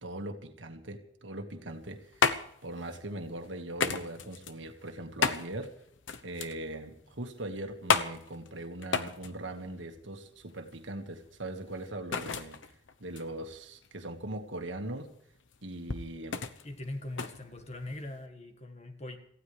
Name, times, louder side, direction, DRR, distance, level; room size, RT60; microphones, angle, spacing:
voice 1, 0.0-2.4 2.6-5.7 6.2-12.7 13.0-15.1 15.6-16.4, right 1 dB, 90° right, 5 dB, 1.8 m, -40 dB
sound 1, 1.7-18.3, left 5 dB, 85° left, 0.9 m, -35 dB
voice 2, 16.6-19.2, left 1 dB, 35° left, 6 dB, 1.7 m, -41 dB
27.0 x 15.5 x 3.4 m, 0.69 s
head